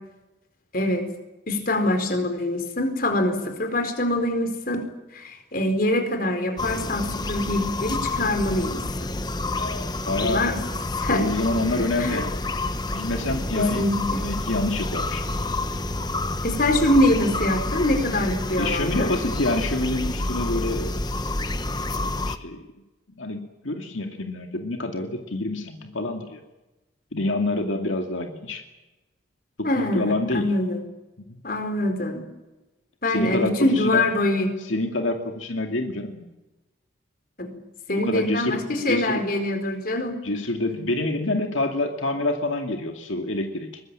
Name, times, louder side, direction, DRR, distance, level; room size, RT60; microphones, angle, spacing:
voice 1, 0.7-1.1 1.5-4.8 5.1-9.1 10.2-10.6 11.0-11.2 11.7-12.2 13.6-14.2 16.4-19.1 29.6-30.8 31.4-32.2 33.0-34.5 37.4-37.6 37.9-40.1, left 1 dB, 45° left, 7 dB, 4.4 m, -24 dB
sound 1, 6.6-22.4, left 2 dB, 20° left, 1.0 m, -29 dB
voice 2, 9.5-10.5 11.1-12.3 12.9-13.8 14.2-15.2 18.6-21.0 22.3-22.8 23.2-26.4 27.1-28.6 29.6-30.5 31.3-31.4 33.1-34.0 34.7-36.3 37.9-39.2 40.2-43.8, left 2 dB, 85° left, 4 dB, 2.4 m, -27 dB
23.0 x 20.5 x 8.9 m, 1.0 s
head